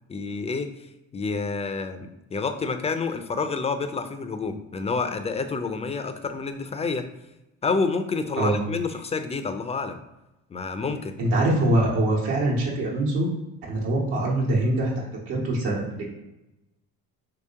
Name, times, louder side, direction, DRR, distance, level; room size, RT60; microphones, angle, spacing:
voice 1, 0.1-0.7 1.1-7.1 7.6-10.0 10.5-11.1, left 4 dB, 20° left, 8 dB, 0.3 m, -28 dB
voice 2, 11.2-13.3 13.7-14.9 15.3-16.0, right 1 dB, 80° right, -3 dB, 1.2 m, -23 dB
3.0 x 2.9 x 3.5 m, 0.95 s
supercardioid pair, 70°, 37 cm